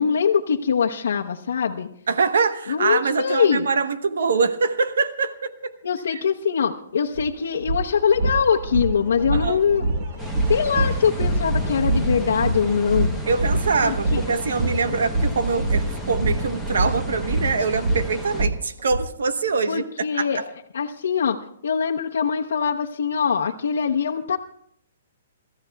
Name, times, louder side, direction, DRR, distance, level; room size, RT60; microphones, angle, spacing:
voice 1, 0.0-1.9 2.7-3.7 5.8-9.9 10.5-13.1 13.8-14.2 19.7-20.4 20.7-24.4, left 6 dB, 80° left, -1 dB, 0.9 m, -22 dB
voice 2, 2.1-5.7 6.1-6.2 9.3-9.6 13.3-20.4, right 4 dB, 80° right, 10 dB, 1.0 m, -24 dB
sound 1, 7.1-7.2 7.6-19.0, right 2 dB, 30° right, 1.4 m, -25 dB
sound 2, 10.2-18.5, equal, 5° right, 0.9 m, -33 dB
29.5 x 14.5 x 2.3 m, 0.68 s
hypercardioid pair, 180°, 0 cm